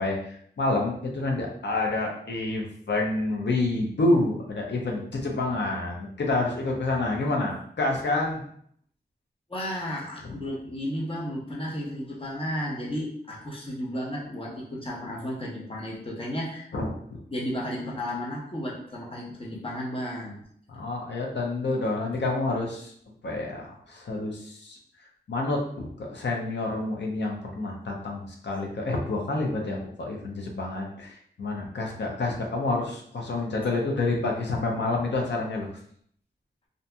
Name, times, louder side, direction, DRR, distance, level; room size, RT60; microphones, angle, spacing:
voice 1, 0.0-8.4 16.7-17.2 20.7-22.9 23.2-24.8 25.3-35.7, left 2 dB, 85° left, 0 dB, 0.6 m, -28 dB
voice 2, 9.5-16.7 17.3-20.4, equal, 30° left, -3 dB, 0.7 m, -33 dB
2.7 x 2.6 x 2.2 m, 0.64 s
wide cardioid pair, 85°, 18 cm